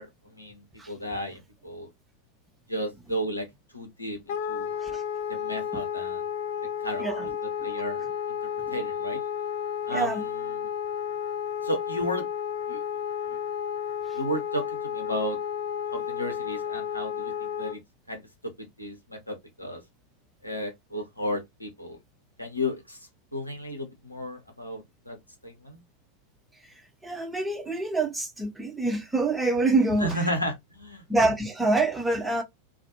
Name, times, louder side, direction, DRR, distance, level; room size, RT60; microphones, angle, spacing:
voice 1, 0.0-1.9 2.7-4.8 5.3-6.3 6.8-8.4 8.7-9.2 9.9-10.7 11.6-12.3 12.7-12.8 13.3-13.4 14.1-15.4 15.9-17.8 18.1-19.8 20.4-22.0 22.4-25.2 25.4-25.8 30.0-31.0, equal, 85° left, 0.7 m, -34 dB
Wind instrument woodwind instrument, 4.3-17.8, left 8 dB, 50° left, 0.4 m, -32 dB
voice 2, 9.9-10.2 27.0-30.1 31.1-32.4, right 2 dB, 10° right, 0.6 m, -26 dB
2.4 x 2.0 x 2.8 m
figure-of-eight pair, 90°, 0 cm